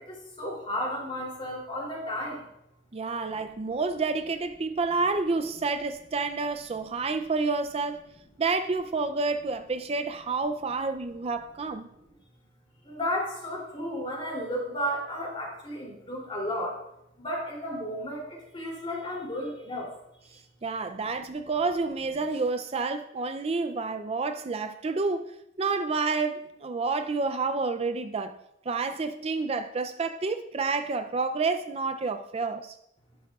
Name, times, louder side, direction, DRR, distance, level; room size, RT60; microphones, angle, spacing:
voice 1, 0.0-2.4 12.8-16.8 17.2-19.9, equal, 30° left, 3.1 m, -33 dB
voice 2, 2.9-8.0 8.4-11.9 20.6-28.4 28.7-32.8, right 4 dB, 35° right, 0.4 m, -29 dB
12.5 x 11.0 x 2.4 m
head